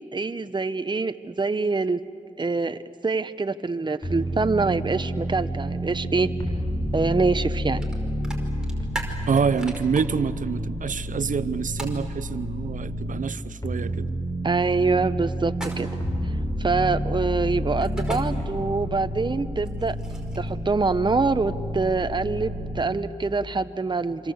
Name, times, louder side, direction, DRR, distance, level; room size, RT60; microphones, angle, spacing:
voice 1, 0.1-2.0 2.4-6.3 6.9-7.8 14.4-15.9 16.6-20.0 20.4-24.3, right 3 dB, 35° right, 11 dB, 0.9 m, -25 dB
sound 1, 4.0-13.2 13.6-22.8, equal, 25° left, 7.2 m, -30 dB
sound 2, 7.8-7.9 8.2-10.0 11.8-12.0 15.5-16.1 17.8-18.2 19.6-20.5, right 1 dB, 5° right, 5.1 m, -36 dB
voice 2, 9.3-14.1, right 6 dB, 75° right, 16 dB, 0.8 m, -26 dB
27.0 x 26.0 x 8.0 m, 2.6 s
cardioid pair, 45°, 14 cm